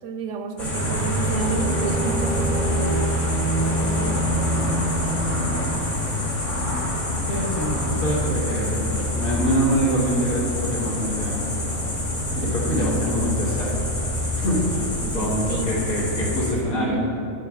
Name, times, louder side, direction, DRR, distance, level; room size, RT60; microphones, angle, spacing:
voice 1, 0.0-2.8 3.8-4.6 5.6-5.9 12.6-13.3 14.7-15.7 16.5-17.0, right 4 dB, 70° right, 5 dB, 1.0 m, -31 dB
sound 1, 0.6-16.5, left 1 dB, 60° left, 1.9 m, -26 dB
Bowed string instrument, 1.2-6.1, right 2 dB, 45° right, 0.6 m, -27 dB
voice 2, 7.3-11.5 12.3-13.7 14.3-14.9 15.1-17.1, equal, 80° left, -5 dB, 2.0 m, -25 dB
12.5 x 4.7 x 2.4 m, 2.5 s
omnidirectional pair, 1.4 m